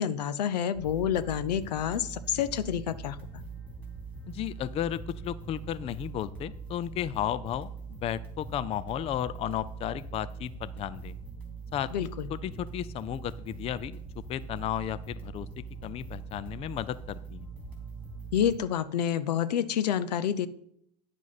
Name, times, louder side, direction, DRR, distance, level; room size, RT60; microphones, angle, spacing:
voice 1, 0.0-3.4 11.9-12.3 18.3-20.5, left 9 dB, 80° left, 16 dB, 0.6 m, -28 dB
sound 1, 0.7-18.6, right 5 dB, 5° left, 3.0 m, -42 dB
voice 2, 4.3-11.2 11.7-14.0 14.3-15.5 15.8-17.5, left 11 dB, 30° left, 18 dB, 0.4 m, -34 dB
9.7 x 7.3 x 4.0 m, 0.69 s
hypercardioid pair, 95°, 21 cm